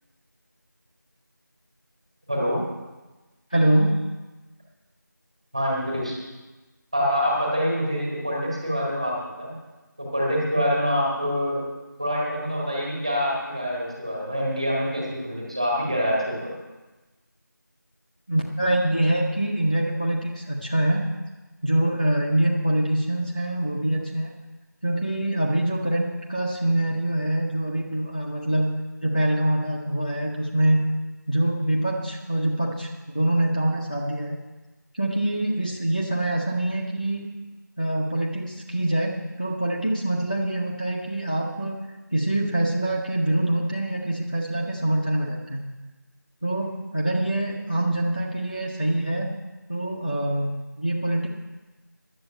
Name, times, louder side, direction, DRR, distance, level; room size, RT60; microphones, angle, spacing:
voice 1, 3.5-4.0 18.3-21.0 21.6-24.3 24.8-28.7 29.0-30.8 31.3-34.4 34.9-37.3 37.8-41.8 42.1-45.6 46.4-49.3 49.7-51.3, right 1 dB, 25° left, -1 dB, 0.7 m, -24 dB
voice 2, 5.5-6.2 6.9-9.5 10.0-11.6 12.0-16.5, equal, 15° right, -3 dB, 1.8 m, -25 dB
10.5 x 8.0 x 8.8 m, 1.2 s
figure-of-eight pair, 175°, 11 cm